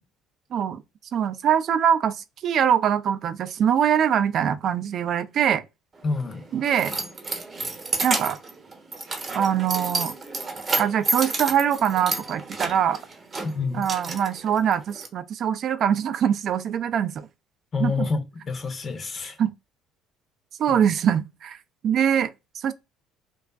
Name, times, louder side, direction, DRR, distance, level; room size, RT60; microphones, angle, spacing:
voice 1, 1.1-5.6 6.5-6.9 8.0-8.4 9.3-10.1 10.8-13.0 13.7-17.3 17.8-18.1 19.4-19.5 20.6-21.6 21.8-22.7, right 9 dB, 55° right, 0.3 m, -23 dB
voice 2, 6.0-6.5 13.4-13.8 17.7-19.4 20.7-20.8, left 4 dB, 40° left, 0.6 m, -28 dB
Keys jangling, 6.0-15.1, right 3 dB, 35° right, 0.7 m, -31 dB
2.4 x 2.3 x 2.3 m
supercardioid pair, 70°, 0 cm